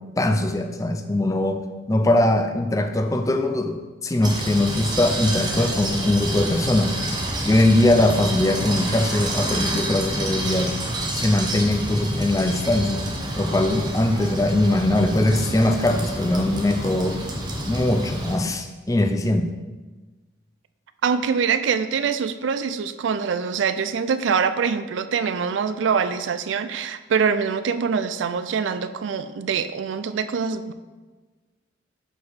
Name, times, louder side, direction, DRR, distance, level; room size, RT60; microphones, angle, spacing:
voice 1, 0.2-1.6 1.9-7.0 7.5-10.7 11.2-13.1 13.4-17.2 17.6-19.5, left 1 dB, 15° left, 6 dB, 0.4 m, -21 dB
sound 1, 4.2-18.4, right 1 dB, 20° right, 0.8 m, -28 dB
voice 2, 21.0-30.7, right 6 dB, 80° right, 12 dB, 0.4 m, -24 dB
6.4 x 5.0 x 4.1 m, 1.3 s
head